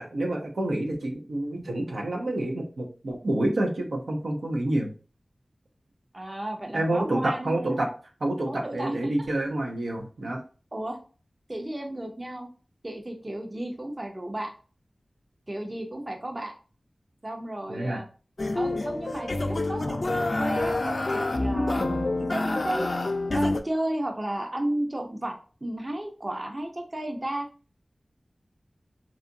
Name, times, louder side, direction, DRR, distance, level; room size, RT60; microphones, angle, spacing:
voice 1, 0.0-4.9 6.7-7.9 8.2-10.4 17.7-18.0, right 1 dB, 85° right, 0 dB, 0.6 m, -28 dB
voice 2, 6.1-7.8 8.5-9.3 10.7-11.0 11.5-12.5 12.8-14.5 15.5-16.5 17.2-18.1 18.5-22.9 23.3-25.3 25.6-27.5, right 1 dB, 35° right, 3 dB, 0.6 m, -33 dB
sound 1, 18.4-23.6, left 2 dB, 60° left, 0.3 m, -27 dB
2.7 x 2.4 x 2.5 m, 0.37 s
wide cardioid pair, 55°, 0 cm